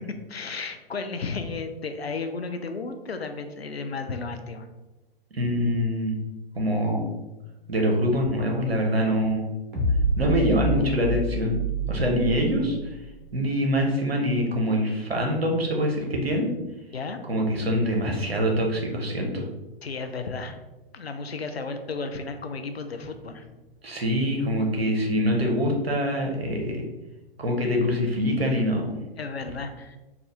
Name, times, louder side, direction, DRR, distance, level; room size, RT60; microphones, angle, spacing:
voice 1, 0.1-4.7 16.9-17.2 19.8-20.6 20.9-23.5 28.5-28.6 29.2-30.0, left 4 dB, 85° left, 7 dB, 0.5 m, -33 dB
voice 2, 5.3-6.2 6.5-7.1 7.7-9.5 10.2-11.6 11.9-13.0 13.3-16.5 17.3-19.4 23.8-26.9 27.4-28.8, equal, 75° right, 1 dB, 0.9 m, -24 dB
sound 1, 9.7-13.1, right 2 dB, 55° right, 1.1 m, -27 dB
3.6 x 2.4 x 3.4 m, 1.1 s
figure-of-eight pair, 110°, 30 cm